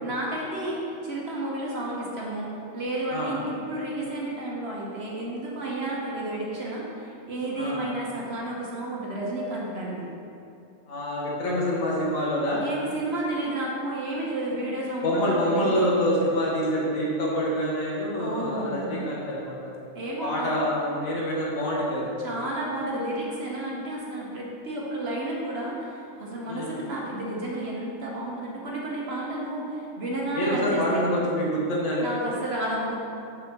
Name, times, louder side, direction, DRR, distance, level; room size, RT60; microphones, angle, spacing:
voice 1, 0.0-10.1 12.6-15.8 18.2-19.0 19.9-20.5 22.2-31.1 32.0-33.0, right 1 dB, 50° right, -4 dB, 1.1 m, -31 dB
voice 2, 10.9-12.6 15.0-19.6 20.2-22.1 26.5-26.7 30.3-32.1, equal, 65° left, -5 dB, 1.7 m, -26 dB
5.5 x 4.0 x 6.0 m, 2.6 s
omnidirectional pair, 1.5 m